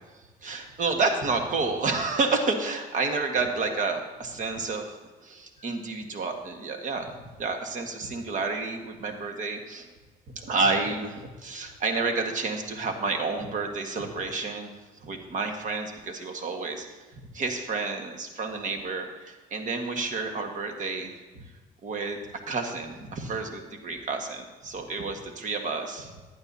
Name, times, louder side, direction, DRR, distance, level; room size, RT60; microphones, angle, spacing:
voice 1, 0.1-4.9 5.2-9.9 10.4-14.7 15.0-16.9 17.3-21.4 21.8-22.2 22.5-26.1, right 3 dB, 50° right, 4 dB, 1.6 m, -30 dB
15.5 x 10.0 x 2.8 m, 1.3 s
cardioid pair, 110°, 17 cm